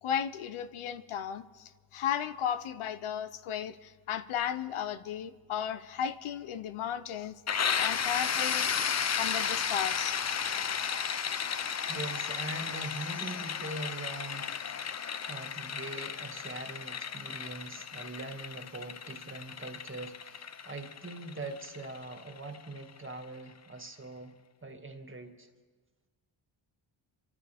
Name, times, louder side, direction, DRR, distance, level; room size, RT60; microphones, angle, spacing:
voice 1, 0.0-7.4 7.8-8.7 9.1-10.2, left 9 dB, 85° left, 12 dB, 0.8 m, -35 dB
sound 1, 7.5-23.1, left 7 dB, 35° left, 0.6 m, -34 dB
voice 2, 11.9-14.5 15.3-24.3 24.6-25.5, right 2 dB, 25° right, 5 dB, 2.0 m, -42 dB
26.0 x 14.5 x 3.5 m, 1.4 s
cardioid pair, 70°, 48 cm